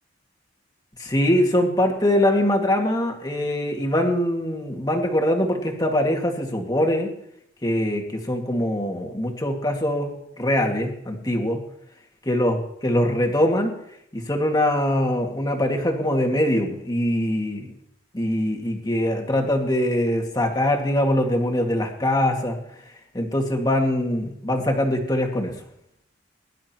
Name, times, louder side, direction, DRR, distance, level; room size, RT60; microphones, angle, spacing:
voice 1, 1.0-7.1 7.6-11.6 12.3-13.8 14.1-17.7 18.1-22.6 23.1-25.6, left 1 dB, 20° left, 2 dB, 2.0 m, -23 dB
22.0 x 11.5 x 3.0 m, 0.73 s
head